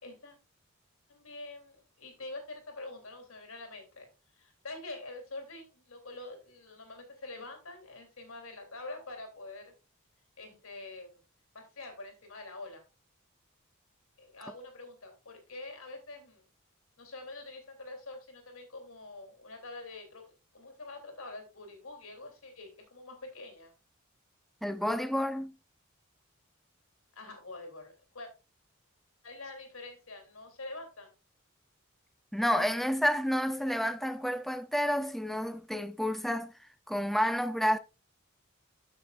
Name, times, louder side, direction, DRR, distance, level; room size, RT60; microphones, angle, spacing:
voice 1, 0.0-0.4 1.1-4.1 4.3-9.7 10.4-11.2 11.5-12.8 14.2-16.4 17.0-20.2 20.5-23.7 27.1-28.3 29.2-31.1, left 2 dB, 80° left, 3.5 m, -46 dB
voice 2, 24.6-25.5 32.3-36.5 36.9-37.8, equal, ahead, 0.6 m, -30 dB
12.0 x 6.8 x 2.5 m
head